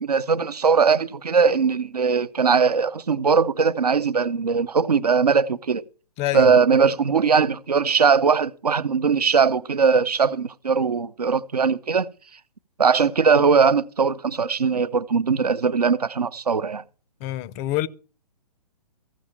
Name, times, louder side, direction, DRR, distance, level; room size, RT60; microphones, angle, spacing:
voice 1, 0.0-5.8 6.3-12.1 12.8-16.8, right 5 dB, 75° right, 0.7 m, -20 dB
voice 2, 6.2-6.5 17.2-17.9, left 15 dB, 25° left, 0.5 m, -26 dB
15.0 x 6.3 x 7.0 m
figure-of-eight pair, 125°, 20 cm